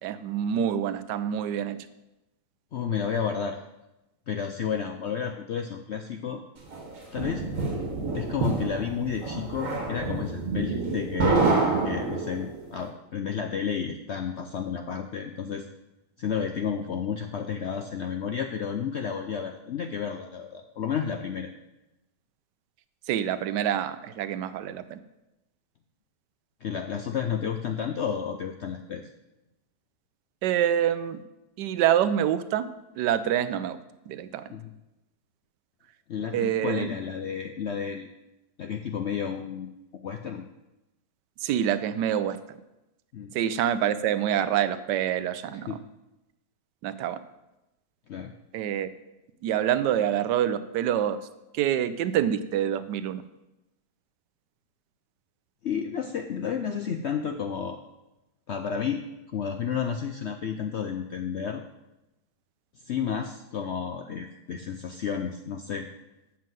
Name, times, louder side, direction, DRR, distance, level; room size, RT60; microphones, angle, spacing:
voice 1, 0.0-1.8 23.1-25.0 30.4-31.2 31.6-32.7 33.0-33.8 34.1-34.5 36.3-36.9 41.4-42.4 43.3-45.8 46.8-47.2 48.5-48.9 49.4-51.2 51.5-53.2, right 10 dB, 85° right, 13 dB, 1.2 m, -26 dB
voice 2, 2.7-3.6 4.3-6.4 7.1-7.5 8.1-11.5 11.8-15.7 16.2-21.5 26.6-29.1 34.5-34.7 36.1-38.1 38.6-40.4 43.1-43.3 45.7-45.8 48.1-48.3 55.6-57.8 58.5-59.0 59.3-61.6 62.9-65.9, left 7 dB, 70° left, 5 dB, 0.6 m, -31 dB
sound 1, 6.7-12.6, right 3 dB, 50° right, 1.9 m, -27 dB
7.5 x 5.8 x 7.5 m, 0.96 s
omnidirectional pair, 1.8 m